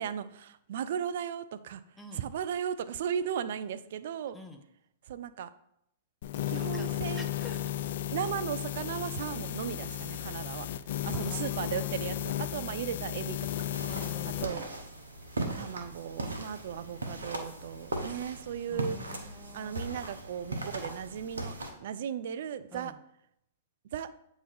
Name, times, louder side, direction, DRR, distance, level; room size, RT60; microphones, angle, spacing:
voice 1, 0.0-1.8 2.1-4.4 5.1-5.5 6.5-7.3 8.1-10.7 11.0-13.7 14.3-14.7 15.6-19.0 19.5-22.9 23.9-24.1, right 9 dB, 60° right, 13 dB, 0.4 m, -36 dB
voice 2, 2.0-2.3 4.3-4.6 6.3-7.7 11.1-11.9 12.5-13.1 13.9-14.7 18.7-19.8 22.7-23.0, left 3 dB, 5° left, 2 dB, 0.8 m, -48 dB
sound 1, 6.2-14.5, left 11 dB, 60° left, 0.4 m, -34 dB
sound 2, 13.7-21.7, right 2 dB, 85° right, 0.9 m, -38 dB
8.0 x 3.0 x 3.9 m, 0.78 s
hypercardioid pair, 115°, 0 cm